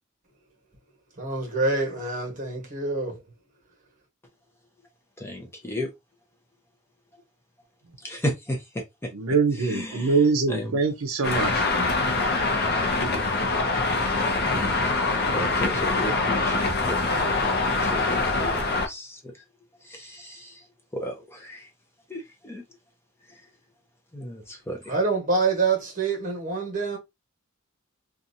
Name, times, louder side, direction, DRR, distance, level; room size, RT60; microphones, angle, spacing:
voice 1, 1.2-3.2 24.9-27.0, right 3 dB, 40° right, 1.2 m, -26 dB
voice 2, 5.2-5.9 8.0-9.1 9.6-10.2 10.5-10.8 14.4-14.9 15.3-19.3 19.8-20.6 20.9-21.7 22.1-22.6 23.3-23.4 24.1-24.9, left 1 dB, 10° left, 0.6 m, -34 dB
voice 3, 9.1-11.6, right 4 dB, 75° right, 0.6 m, -23 dB
Traffic noise roadway noise, 11.2-18.9, left 3 dB, 50° left, 0.6 m, -24 dB
2.7 x 2.3 x 2.6 m
head